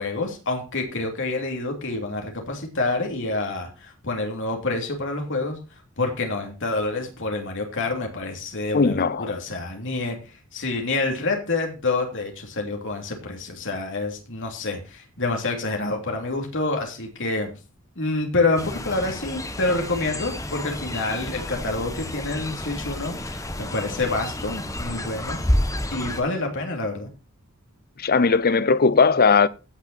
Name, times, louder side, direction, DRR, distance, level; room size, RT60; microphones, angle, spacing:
voice 1, 0.0-5.6 6.0-10.2 10.5-17.5 18.0-25.4 25.9-27.1, left 2 dB, 60° left, 3.1 m, -27 dB
voice 2, 8.7-9.3 28.0-29.5, left 4 dB, 45° left, 0.7 m, -18 dB
Fowl, 18.6-26.2, left 1 dB, 15° left, 1.5 m, -30 dB
16.0 x 6.0 x 4.3 m
head